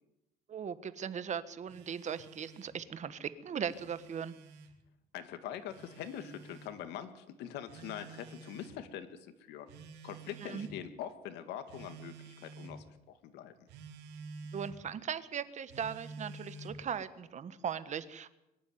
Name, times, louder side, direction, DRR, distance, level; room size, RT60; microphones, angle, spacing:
voice 1, 0.5-4.4 10.4-10.7 14.5-18.3, right 7 dB, 45° right, 13 dB, 1.5 m, -38 dB
Telephone, 1.7-2.8 3.5-4.7 5.7-6.7 7.7-8.8 9.7-10.8 11.7-12.8 13.7-14.8 15.7-16.8, right 3 dB, 85° right, 3.1 m, -50 dB
voice 2, 5.1-9.7 10.0-13.5, left 10 dB, 85° left, 9 dB, 2.1 m, -44 dB
23.0 x 11.5 x 9.6 m, 0.90 s
cardioid pair, 110°, 17 cm